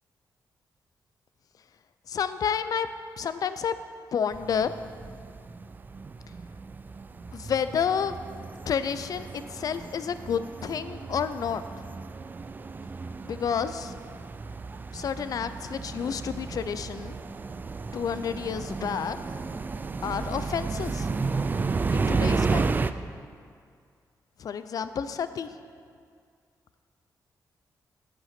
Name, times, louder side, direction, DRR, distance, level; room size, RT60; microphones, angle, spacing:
voice 1, 2.1-2.9 3.2-3.7 4.1-4.7 7.3-8.2 8.7-11.6 13.2-13.9 14.9-17.2 17.9-19.2 20.0-21.1 21.9-22.8 24.4-25.5, left 7 dB, 60° left, 12 dB, 0.5 m, -30 dB
sound 1, 4.3-22.9, right 4 dB, 25° right, 0.3 m, -33 dB
10.0 x 7.9 x 5.9 m, 2.2 s
wide cardioid pair, 130°, 7 cm